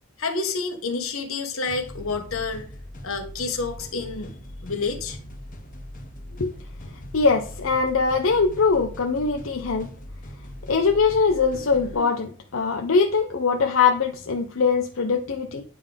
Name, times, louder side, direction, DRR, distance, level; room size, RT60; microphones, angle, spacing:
voice 1, 0.2-2.6 3.0-5.2, left 4 dB, 85° left, 1.2 m, -29 dB
sound 1, 1.7-11.9, equal, 40° left, 1.2 m, -41 dB
voice 2, 7.1-9.9 10.7-15.6, left 5 dB, 65° left, 0.6 m, -22 dB
9.5 x 3.6 x 3.4 m
head